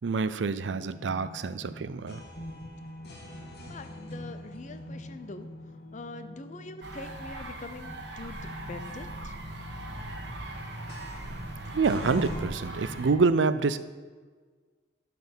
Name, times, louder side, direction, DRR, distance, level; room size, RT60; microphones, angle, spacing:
voice 1, 0.0-2.2 11.7-13.8, right 4 dB, 90° right, 13 dB, 0.5 m, -27 dB
sound 1, 0.8-12.4, left 1 dB, 60° left, 1.7 m, -44 dB
voice 2, 3.6-5.5 5.9-8.4 8.7-9.3, left 2 dB, 45° left, 9 dB, 0.7 m, -43 dB
sound 2, 6.8-13.1, right 1 dB, 70° right, 1.3 m, -39 dB
12.0 x 4.3 x 6.9 m, 1.4 s
head